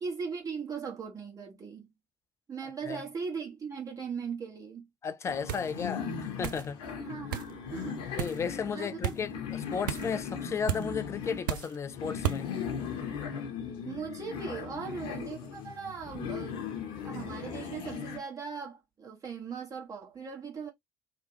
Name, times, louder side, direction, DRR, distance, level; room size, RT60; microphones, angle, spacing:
voice 1, 0.0-1.9 2.5-4.9 7.0-8.2 8.7-9.2 13.8-16.7 17.0-20.7, right 5 dB, 30° right, 1.3 m, -39 dB
voice 2, 5.0-6.8 8.2-12.5, left 6 dB, 25° left, 0.4 m, -34 dB
sound 1, 5.3-18.2, left 7 dB, 55° left, 0.8 m, -38 dB
sound 2, 5.5-5.7 6.4-6.7 7.3-7.5 8.2-8.4 9.0-9.2 9.9-10.1 10.7-10.9 11.5-11.8 12.2-12.4, right 11 dB, 70° right, 0.4 m, -33 dB
2.9 x 2.1 x 3.2 m
figure-of-eight pair, 60°, 11 cm